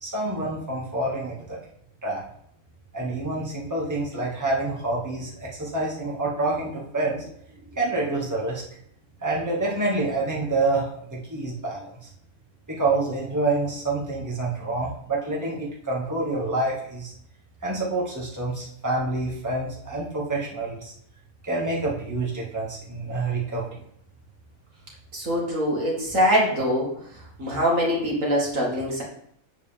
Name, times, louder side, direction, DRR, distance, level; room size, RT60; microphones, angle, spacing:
voice 1, 0.0-1.6 2.0-2.2 2.9-7.3 7.7-8.6 9.2-12.1 12.7-17.1 17.6-20.9 21.4-23.8, right 2 dB, 10° right, -5 dB, 2.0 m, -27 dB
voice 2, 25.1-26.9 27.4-29.0, equal, 60° right, -3 dB, 2.4 m, -23 dB
8.1 x 7.5 x 3.6 m, 0.68 s
omnidirectional pair, 1.5 m